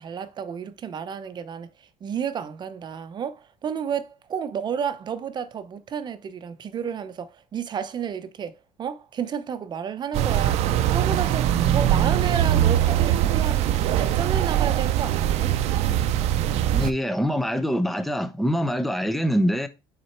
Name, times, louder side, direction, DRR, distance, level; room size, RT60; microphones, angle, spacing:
voice 1, 0.0-1.7 2.0-15.6, right 7 dB, 40° right, 0.8 m, -31 dB
sound 1, 10.1-16.9, right 11 dB, 70° right, 0.7 m, -22 dB
voice 2, 16.5-19.7, equal, ahead, 0.8 m, -24 dB
6.3 x 4.1 x 4.5 m
cardioid pair, 105°, 11 cm